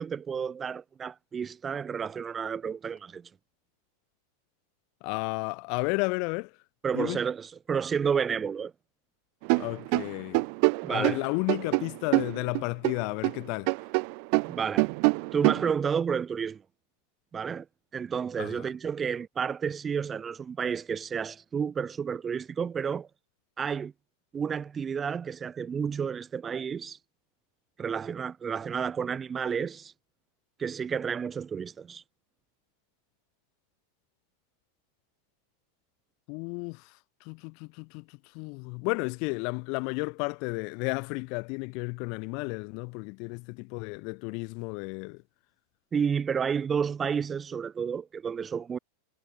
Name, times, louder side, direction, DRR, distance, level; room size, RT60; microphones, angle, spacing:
voice 1, 0.0-3.3 6.8-8.7 10.8-11.2 14.5-14.9 15.3-16.6 17.3-17.7 17.9-23.1 23.6-23.9 24.3-27.0 27.8-29.9 30.6-32.0 45.9-48.8, right 7 dB, 20° right, 2.1 m, -31 dB
voice 2, 5.0-6.5 6.9-7.2 9.6-10.4 10.9-13.7 18.4-18.7 36.3-45.2, left 34 dB, 45° left, 0.9 m, -33 dB
sound 1, 9.4-13.4 13.7-15.7, right 40 dB or more, 45° right, 0.9 m, -26 dB
figure-of-eight pair, 90°, 0 cm